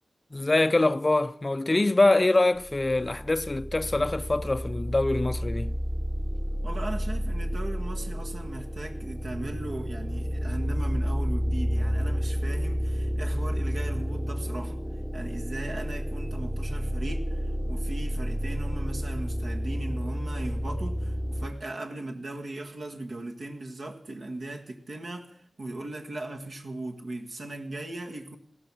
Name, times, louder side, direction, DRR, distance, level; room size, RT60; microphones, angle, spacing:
voice 1, 0.3-5.8, left 2 dB, 30° left, 0.6 m, -24 dB
sound 1, 2.6-21.5, equal, 10° right, 1.0 m, -30 dB
voice 2, 6.6-14.8 15.1-28.4, right 2 dB, 65° right, 1.6 m, -38 dB
16.0 x 13.0 x 6.2 m
wide cardioid pair, 80°, 0 cm